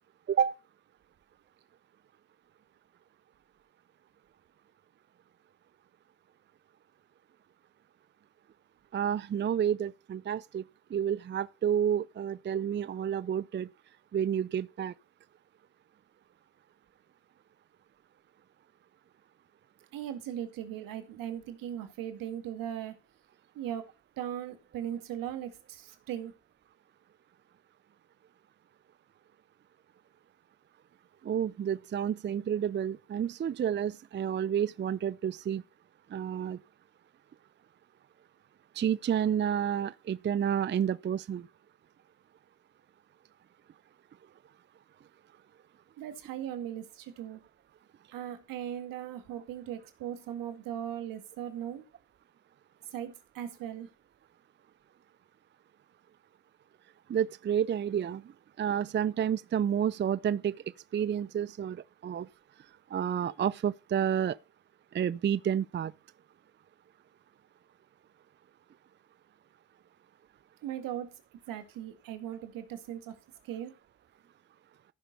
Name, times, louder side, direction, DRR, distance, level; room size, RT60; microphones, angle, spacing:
voice 1, 8.9-10.6 10.9-13.7 14.1-14.9 31.2-35.6 36.1-36.6 38.7-41.5 57.1-58.2 58.6-60.6 60.9-62.3 62.9-64.4 64.9-65.9, right 9 dB, 35° right, 0.5 m, -30 dB
voice 2, 19.9-23.0 23.5-23.9 24.2-26.3 46.0-47.4 48.1-51.8 52.9-53.9 70.6-71.2 71.5-73.1 73.4-73.7, right 10 dB, 80° right, 2.0 m, -38 dB
14.0 x 5.9 x 5.3 m
supercardioid pair, 55°, 33 cm